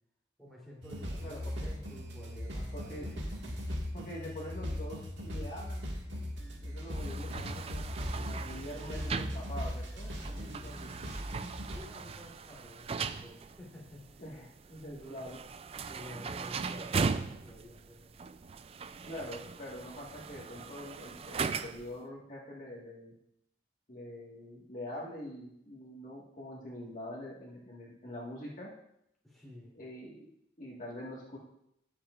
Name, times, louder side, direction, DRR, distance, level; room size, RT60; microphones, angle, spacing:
voice 1, 0.4-3.1 10.3-10.8 11.7-14.2 15.0-15.2 15.9-18.2 29.2-29.8, left 1 dB, ahead, -6 dB, 3.3 m, -51 dB
sound 1, 0.8-11.8, equal, 80° right, 1.9 m, -39 dB
voice 2, 1.2-1.7 2.7-3.2 3.9-7.8 8.2-11.1 14.2-15.4 19.1-23.1 23.9-28.7 29.7-30.3 30.6-31.4, left 1 dB, 45° left, -4 dB, 1.7 m, -45 dB
sound 2, 6.9-22.0, right 5 dB, 35° right, 0.3 m, -39 dB
19.0 x 7.3 x 2.5 m, 0.77 s
head